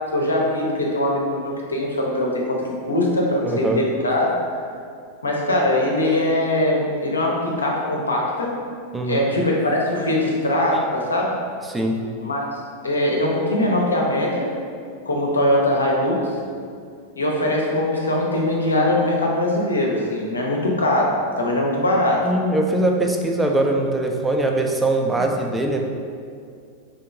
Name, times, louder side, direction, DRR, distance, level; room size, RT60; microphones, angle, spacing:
voice 1, 0.1-2.6 2.9-4.3 5.2-8.5 9.0-11.4 12.2-12.4 12.8-14.5 15.1-16.3 17.2-22.2, left 1 dB, 75° left, -2 dB, 0.6 m, -21 dB
voice 2, 3.4-3.8 8.9-9.3 11.7-12.0 22.2-25.8, right 2 dB, 10° right, 2 dB, 0.4 m, -22 dB
3.7 x 2.9 x 3.4 m, 2.3 s
figure-of-eight pair, 90°, 0 cm